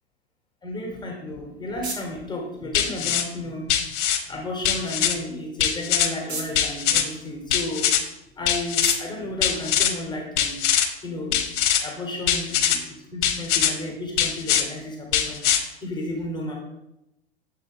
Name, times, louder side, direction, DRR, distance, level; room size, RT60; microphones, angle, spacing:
voice 1, 0.6-3.7 4.3-7.9 8.4-10.6 11.0-11.4 11.8-12.8 13.1-16.6, left 1 dB, 15° left, 0 dB, 1.0 m, -33 dB
sound 1, 1.0-10.4, right 3 dB, 70° right, 1.4 m, -42 dB
sound 2, 2.7-3.2 3.7-4.2 4.6-5.2 5.6-6.1 6.6-7.1 7.5-8.0 8.5-9.0 9.4-9.9 10.4-10.9 11.3-11.8 12.3-12.8 13.2-13.7 14.2-14.6 15.1-15.6, left 10 dB, 50° left, 0.8 m, -22 dB
6.9 x 4.1 x 3.5 m, 0.91 s
figure-of-eight pair, 95°, 33 cm